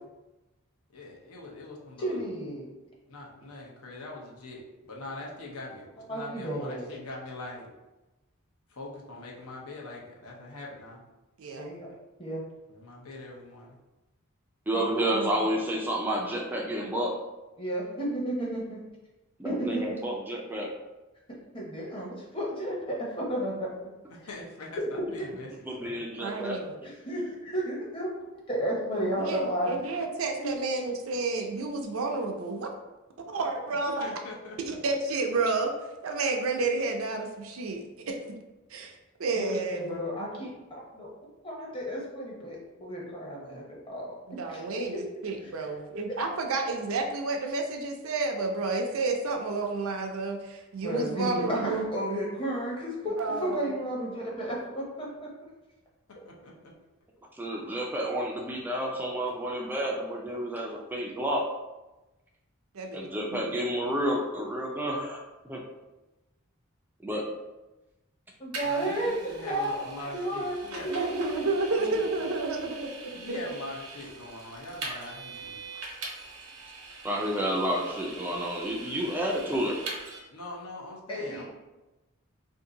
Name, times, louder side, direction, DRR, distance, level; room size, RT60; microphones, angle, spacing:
voice 1, 0.9-2.2 3.1-7.7 8.7-11.0 12.7-13.8 19.6-19.8 24.1-25.5 25.8-26.0 34.0-34.8 56.2-56.7 68.6-70.9 71.8-72.0 73.1-75.6 80.3-81.5, left 2 dB, 85° left, -2 dB, 0.8 m, -42 dB
voice 2, 2.0-2.6 6.1-6.9 11.6-11.9 12.2-12.4 17.6-18.8 19.4-20.0 21.5-23.7 24.7-24.9 26.8-28.1 28.5-29.7 30.4-30.5 39.4-41.1 41.4-44.6 45.6-45.7 46.1-46.2 50.8-55.5 68.4-69.8 70.1-72.3 81.1-81.5, right 1 dB, 25° left, -3 dB, 0.8 m, -33 dB
voice 3, 11.4-11.7 14.7-15.5 26.2-26.8 29.0-32.7 33.3-34.1 34.6-35.7 36.0-38.2 38.7-38.9 39.2-40.0 44.3-51.8 53.2-53.7 62.7-63.6 70.9-73.5, right 3 dB, 70° right, 3 dB, 0.5 m, -31 dB
voice 4, 14.7-17.2 19.4-20.7 25.7-26.6 57.4-61.5 62.9-65.2 65.4-65.6 67.0-67.3 77.0-79.8, equal, 10° right, -1 dB, 0.3 m, -30 dB
Vehicle, 68.5-80.2, right 3 dB, 90° right, 0.9 m, -42 dB
2.7 x 2.5 x 3.7 m, 1.1 s
head